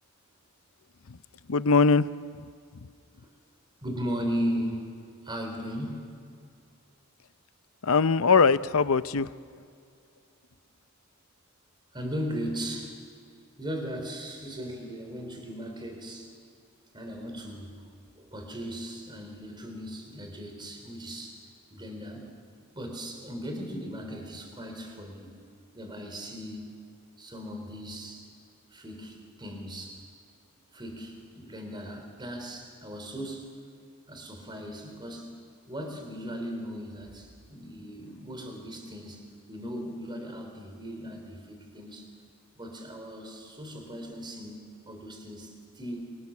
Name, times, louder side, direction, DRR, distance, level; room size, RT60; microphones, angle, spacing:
voice 1, 1.5-2.1 7.8-9.3, left 5 dB, 70° left, 14 dB, 0.7 m, -21 dB
voice 2, 3.8-4.9 5.2-6.1 11.9-13.0 13.6-16.3 16.9-17.9 18.2-21.4 21.7-22.3 22.7-25.3 25.7-26.7 27.2-28.3 28.7-30.0 30.7-33.5 34.1-35.3 35.7-42.1 42.6-46.1, equal, 20° right, 3 dB, 4.0 m, -37 dB
28.0 x 25.0 x 7.3 m, 2.3 s
head